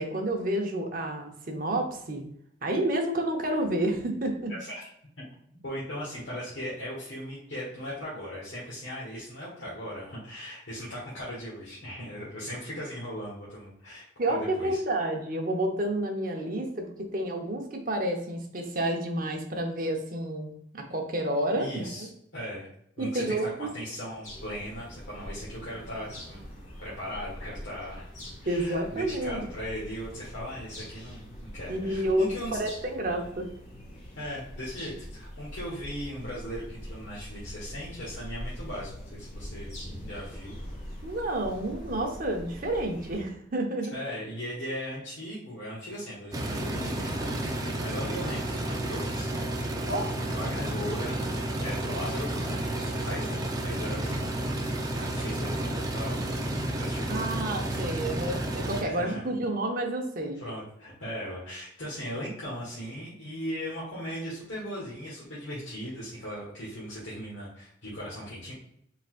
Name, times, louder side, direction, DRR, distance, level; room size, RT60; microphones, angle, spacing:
voice 1, 0.0-2.2 2.6-4.5 14.2-22.1 23.0-23.7 28.5-29.5 31.7-33.5 41.0-43.9 49.9-50.1 57.1-60.4, right 1 dB, 45° right, 2 dB, 0.8 m, -30 dB
voice 2, 5.6-14.8 21.5-22.1 22.3-22.7 23.0-26.5 26.8-32.6 34.1-39.7 40.1-40.6 43.9-49.3 50.3-53.4 53.6-54.4 54.9-56.2 56.8-57.9 58.2-58.4 58.8-59.2 60.4-68.5, equal, 85° left, -7 dB, 1.6 m, -38 dB
sound 1, 24.2-43.2, equal, 35° left, 1.4 m, -43 dB
sound 2, 46.3-58.8, right 1 dB, 20° right, 0.5 m, -31 dB
4.2 x 4.0 x 2.5 m, 0.70 s
head